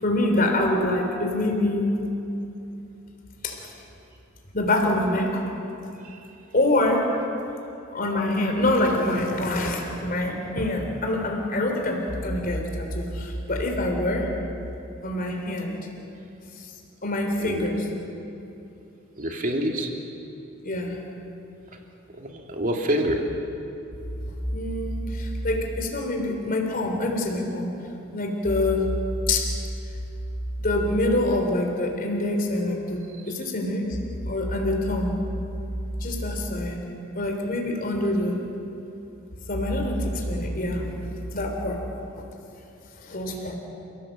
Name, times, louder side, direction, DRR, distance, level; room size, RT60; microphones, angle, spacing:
voice 1, 0.0-1.9 3.4-3.7 4.5-5.4 6.5-7.1 7.9-14.3 15.0-15.8 17.0-17.8 20.6-21.0 24.5-27.7 28.1-28.9 29.3-29.5 30.6-33.0 33.3-33.9 34.3-35.1 36.0-36.9 37.2-38.4 39.5-40.9 41.3-41.8 43.0-43.5, left 1 dB, 45° left, 2 dB, 3.5 m, -25 dB
voice 2, 17.4-17.7 19.2-19.9 22.1-23.3 33.2-33.3, right 1 dB, 45° right, 2 dB, 2.7 m, -27 dB
29.5 x 17.0 x 7.7 m, 2.9 s
head